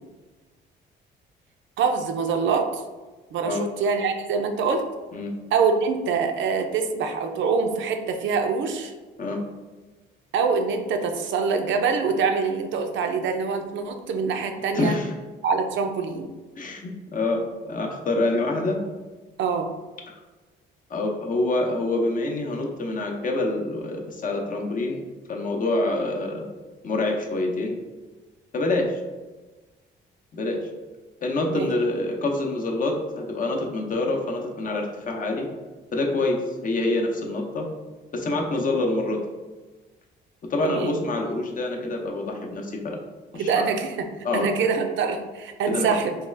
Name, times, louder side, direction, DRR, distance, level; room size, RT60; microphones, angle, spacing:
voice 1, 1.8-2.8 3.3-4.9 5.5-8.9 10.3-14.9 15.4-16.3 19.4-19.7 31.5-31.7 40.6-41.0 43.4-44.1 44.3-46.2, right 5 dB, 70° right, 5 dB, 0.5 m, -24 dB
voice 2, 14.7-15.1 16.6-18.8 20.9-25.0 25.3-26.5 26.8-27.8 28.5-29.0 30.3-30.6 31.2-35.5 35.9-37.7 38.1-39.2 40.5-43.0 43.3-43.6 44.2-44.5 45.7-45.9, left 2 dB, 45° left, 1 dB, 0.7 m, -26 dB
3.5 x 2.3 x 3.2 m, 1.2 s
cardioid pair, 90°, 20 cm